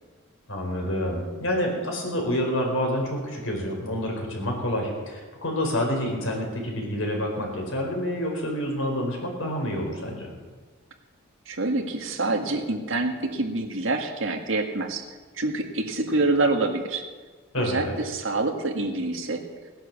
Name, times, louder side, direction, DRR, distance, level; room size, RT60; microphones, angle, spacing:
voice 1, 0.5-10.3 17.5-17.9, equal, 70° left, 0 dB, 4.6 m, -28 dB
voice 2, 11.5-15.0 15.4-17.0 17.6-19.4, right 2 dB, 65° right, 3 dB, 1.9 m, -26 dB
17.5 x 10.5 x 7.3 m, 1.4 s
head